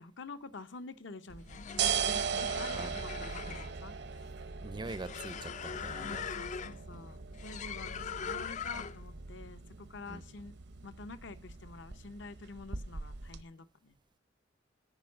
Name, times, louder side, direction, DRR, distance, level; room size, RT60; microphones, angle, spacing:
voice 1, 0.0-1.7 2.3-4.0 6.1-10.5 10.8-14.0, left 3 dB, 65° left, 11 dB, 0.7 m, -48 dB
sound 1, 1.3-9.1, left 7 dB, 40° left, 0.4 m, -42 dB
sound 2, 1.3-13.4, right 6 dB, 60° right, 0.7 m, -39 dB
voice 2, 4.6-6.2 6.9-7.1 10.1-10.2, right 2 dB, 25° right, 16 dB, 0.5 m, -43 dB
9.0 x 5.4 x 7.3 m, 0.38 s
head